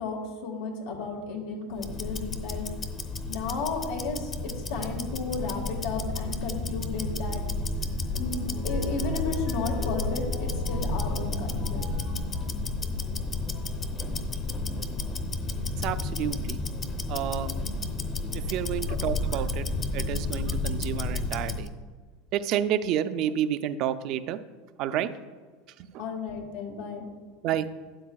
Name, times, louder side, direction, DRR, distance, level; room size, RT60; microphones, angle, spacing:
voice 1, 0.0-2.6 3.3-4.3 4.6-7.4 8.1-11.8 18.9-19.0 26.0-27.0, left 4 dB, 85° left, 0 dB, 1.6 m, -33 dB
Tick-tock, 1.7-21.7, left 2 dB, 25° left, 0.8 m, -31 dB
sound 1, 7.0-12.6 13.3-13.8 15.0-15.1 15.8-16.1 18.3-18.9 19.6-19.7 19.9-20.0, left 1 dB, 70° left, 2.2 m, -44 dB
voice 2, 15.8-16.6 17.1-17.5 18.3-19.7 19.9-21.7 22.3-24.4 24.8-25.1 25.9-26.0 27.4-27.7, right 10 dB, 45° right, 12 dB, 0.4 m, -29 dB
12.5 x 9.1 x 2.3 m, 1.5 s
supercardioid pair, 145°, 0 cm